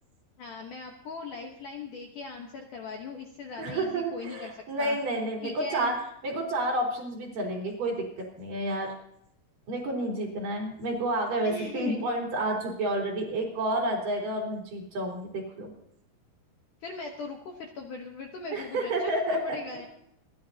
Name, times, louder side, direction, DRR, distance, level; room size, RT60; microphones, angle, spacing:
voice 1, 0.4-4.5 4.8-5.0 5.4-5.9 11.4-12.0 16.8-19.9, left 4 dB, 65° left, 2 dB, 2.2 m, -39 dB
voice 2, 3.6-6.0 6.2-8.9 9.7-15.7 18.5-19.6, right 1 dB, 50° right, -2 dB, 5.1 m, -30 dB
27.0 x 12.0 x 2.8 m, 0.73 s
omnidirectional pair, 5.0 m